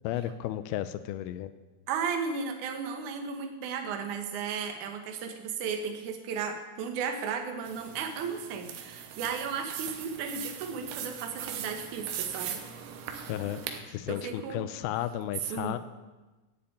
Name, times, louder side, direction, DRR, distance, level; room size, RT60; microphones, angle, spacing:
voice 1, 0.0-1.5 13.3-13.6 13.9-15.8, left 12 dB, 85° left, 12 dB, 2.2 m, -33 dB
voice 2, 1.9-12.6 14.1-14.6 15.5-15.8, right 6 dB, 65° right, 5 dB, 2.1 m, -34 dB
sound 1, 7.7-13.8, right 9 dB, 85° right, 3.3 m, -40 dB
12.5 x 7.1 x 8.7 m, 1.2 s
omnidirectional pair, 4.9 m